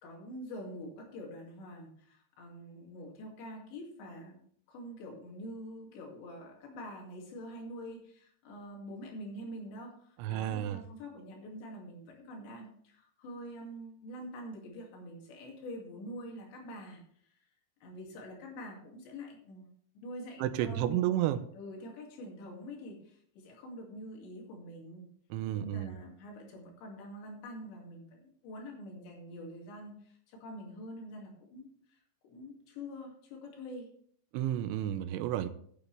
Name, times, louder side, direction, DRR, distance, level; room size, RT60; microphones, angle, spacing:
voice 1, 0.0-4.4 4.7-17.0 17.8-19.7 20.0-21.2 21.5-25.1 25.5-33.9, equal, 70° left, 0 dB, 4.6 m, -46 dB
voice 2, 10.2-10.8 20.4-21.4 25.3-25.9 34.3-35.5, right 12 dB, 85° right, 9 dB, 3.0 m, -31 dB
15.0 x 8.4 x 3.3 m, 0.63 s
omnidirectional pair, 5.4 m